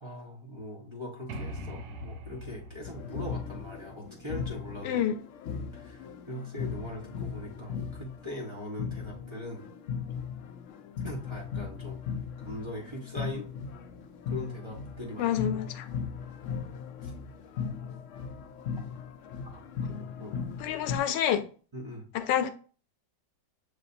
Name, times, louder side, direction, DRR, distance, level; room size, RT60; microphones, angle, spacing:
voice 1, 0.0-5.0 5.7-9.6 11.0-13.5 14.3-15.6 17.0-17.1 17.5-17.6 19.5-19.6 19.9-20.3 21.7-22.1, left 1 dB, 25° right, 0.7 m, -41 dB
sound 1, 1.3-5.0, equal, 75° right, 1.3 m, -43 dB
sound 2, 2.8-8.5 8.8-21.0, left 6 dB, 75° left, 0.7 m, -38 dB
voice 2, 4.8-5.1 15.2-15.9 20.6-21.4 22.1-22.5, left 10 dB, 90° left, 1.3 m, -27 dB
6.4 x 3.2 x 2.5 m
omnidirectional pair, 1.9 m